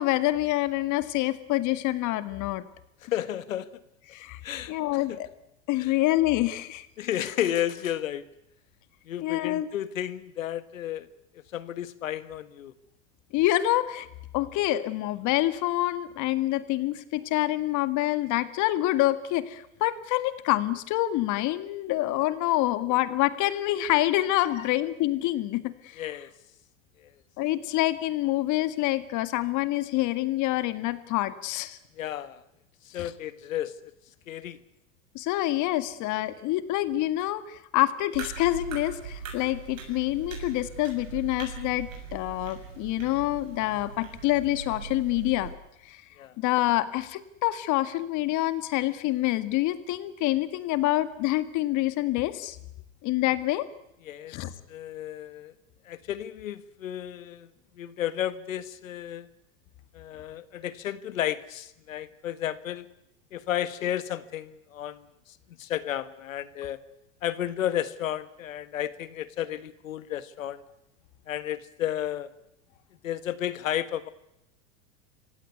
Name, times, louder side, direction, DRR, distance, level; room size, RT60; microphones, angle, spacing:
voice 1, 0.0-2.6 4.1-4.4 4.7-5.3 5.7-6.9 9.2-9.7 13.3-14.1 14.3-26.1 27.4-31.8 32.9-33.1 35.1-45.5 45.9-46.0 46.4-52.6 53.0-53.7 54.3-54.5, left 16 dB, 50° left, 12 dB, 2.0 m, -27 dB
voice 2, 3.0-3.7 4.4-4.7 5.1-5.2 5.8-5.9 7.0-8.2 9.1-11.1 11.5-12.7 24.6-24.7 26.0-26.3 27.0-27.1 32.0-32.4 32.9-33.8 34.3-34.6 46.2-46.3 54.0-54.3 54.7-55.5 55.9-57.5 57.8-59.3 59.9-62.9 63.3-66.8 67.2-70.6 71.3-72.3 73.0-74.1, left 11 dB, 85° left, 14 dB, 1.6 m, -32 dB
sound 1, 38.1-45.5, right 6 dB, 85° right, 7.4 m, -40 dB
26.5 x 16.5 x 9.6 m, 0.85 s
hypercardioid pair, 105°, 39 cm